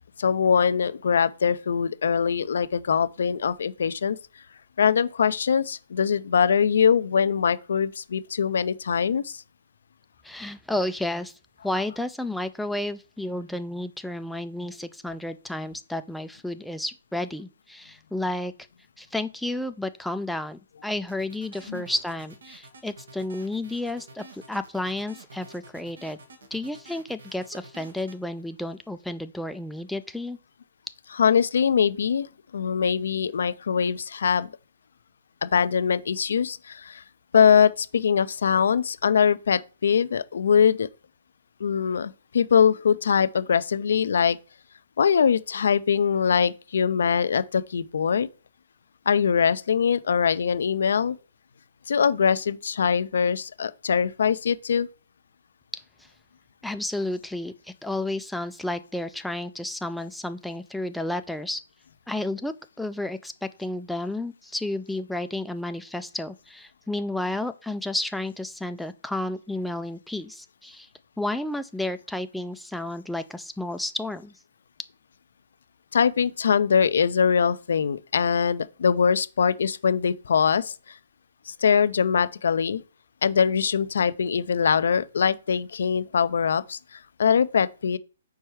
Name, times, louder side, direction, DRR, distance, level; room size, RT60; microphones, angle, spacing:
voice 1, 0.2-4.2 4.8-9.4 21.7-21.8 31.1-32.3 32.5-34.5 35.4-37.0 37.3-40.9 41.6-44.4 45.0-48.3 49.1-51.2 51.9-54.9 75.9-80.7 81.5-82.8 83.2-88.0, left 7 dB, 70° left, 0.4 m, -22 dB
voice 2, 10.2-11.3 11.6-18.5 19.0-26.2 26.5-30.4 56.6-57.5 57.8-61.6 62.1-70.9 71.2-74.3, left 1 dB, ahead, 0.4 m, -31 dB
sound 1, 21.1-28.2, right 3 dB, 80° right, 1.5 m, -48 dB
4.6 x 4.4 x 4.8 m
hypercardioid pair, 140°, 0 cm